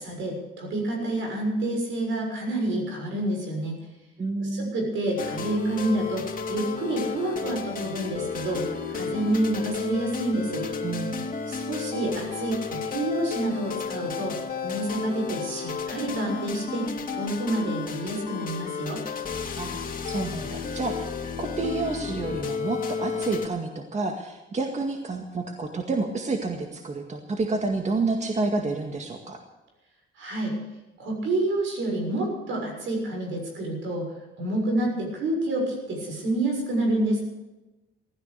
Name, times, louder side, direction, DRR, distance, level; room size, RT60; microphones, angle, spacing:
voice 1, 0.0-3.8 4.4-10.7 11.5-19.0 30.2-30.6 31.0-34.1 34.4-37.2, right 1 dB, 80° right, 1 dB, 6.6 m, -28 dB
voice 2, 4.2-4.7 10.8-11.3 19.5-21.1 21.4-29.4, right 3 dB, 35° right, 3 dB, 2.0 m, -29 dB
sound 1, 5.2-23.5, left 5 dB, 45° left, 2.6 m, -32 dB
16.0 x 13.5 x 6.8 m, 1.0 s
cardioid pair, 90°, 20 cm